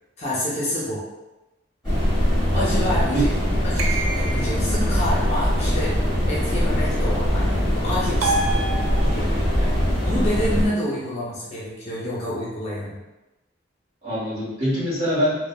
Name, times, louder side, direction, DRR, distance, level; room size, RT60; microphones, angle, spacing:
voice 1, 0.2-1.0 2.6-3.3 3.6-5.9 6.3-8.5 9.1-13.0, left 1 dB, 35° left, -6 dB, 0.5 m, -28 dB
sound 1, 1.8-10.7, equal, ahead, 1.5 m, -22 dB
voice 2, 2.5-3.2 14.0-15.5, equal, 30° right, -10 dB, 1.1 m, -25 dB
sound 2, 3.8-4.7 8.2-9.4, right 3 dB, 85° right, 0.3 m, -27 dB
3.1 x 2.0 x 2.2 m, 1.0 s
head